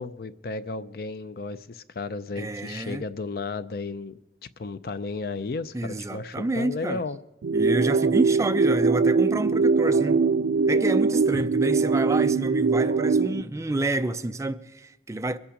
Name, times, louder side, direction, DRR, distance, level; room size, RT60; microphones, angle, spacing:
voice 1, 0.0-4.1 4.6-7.2 11.3-11.4, left 3 dB, 60° left, 0.5 m, -33 dB
voice 2, 2.4-3.0 5.7-7.0 7.5-10.2 10.7-15.4, right 2 dB, 15° right, 0.4 m, -29 dB
sound 1, 7.4-13.4, right 4 dB, 80° right, 0.4 m, -22 dB
23.0 x 8.7 x 5.0 m
head